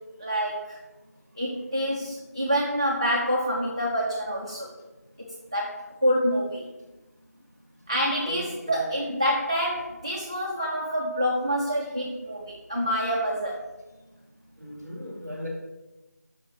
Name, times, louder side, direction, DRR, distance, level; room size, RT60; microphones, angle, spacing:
voice 1, 0.2-0.8 1.4-4.7 5.2-6.7 7.9-13.6, equal, 20° right, -2 dB, 0.4 m, -27 dB
voice 2, 8.2-8.8 14.6-15.5, left 1 dB, ahead, -18 dB, 1.5 m, -37 dB
5.9 x 5.7 x 4.0 m, 1.1 s
figure-of-eight pair, 170°, 9 cm